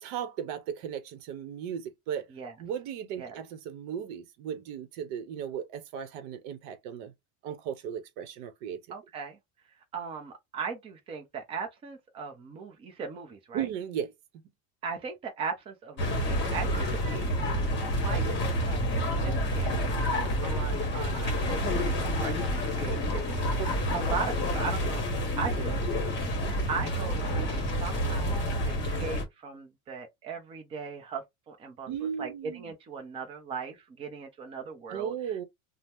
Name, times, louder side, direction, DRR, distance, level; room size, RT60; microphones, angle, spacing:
voice 1, 0.0-2.3 2.6-7.1 7.4-8.8 13.5-14.1 23.6-23.9 26.4-26.7 31.9-32.7 34.9-35.4, right 8 dB, 55° right, 0.8 m, -36 dB
voice 2, 8.9-9.4 9.9-13.7 14.8-17.4 18.0-19.7 20.4-21.9 22.2-25.0 25.4-25.9 26.1-26.3 26.7-31.9 32.2-35.4, right 5 dB, 15° right, 0.4 m, -38 dB
sound 1, 16.0-29.2, equal, 25° left, 0.9 m, -29 dB
2.8 x 2.1 x 3.4 m
cardioid pair, 160°, 44 cm